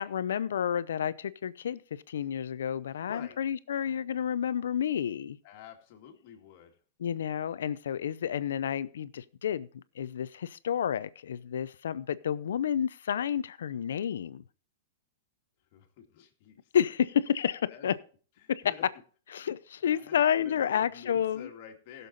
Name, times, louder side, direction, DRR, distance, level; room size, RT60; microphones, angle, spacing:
voice 1, 0.0-1.8 2.1-5.4 7.0-14.4 16.7-18.0 18.5-18.6 19.3-21.5, left 9 dB, 85° left, 0.6 m, -30 dB
voice 2, 2.9-3.4 5.4-6.8 15.7-16.6 17.7-17.9 18.4-18.9 19.9-22.1, left 8 dB, 50° left, 2.2 m, -49 dB
16.0 x 6.9 x 4.1 m
hypercardioid pair, 145°, 0 cm